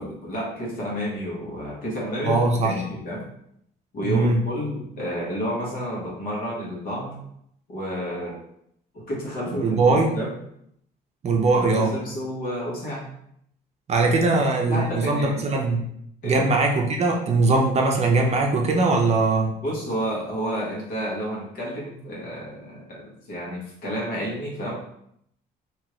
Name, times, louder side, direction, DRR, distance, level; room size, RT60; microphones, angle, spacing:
voice 1, 0.0-3.2 3.9-7.2 7.7-8.4 8.9-10.3 11.5-13.1 14.2-14.3 14.7-15.4 16.2-16.5 19.6-24.7, equal, 60° left, -4 dB, 1.3 m, -30 dB
voice 2, 2.2-2.7 4.0-4.4 9.6-10.1 11.2-11.9 13.9-15.8 16.2-19.5, right 3 dB, 40° right, 1 dB, 0.6 m, -21 dB
2.8 x 2.4 x 3.1 m, 0.71 s
cardioid pair, 110°, 17 cm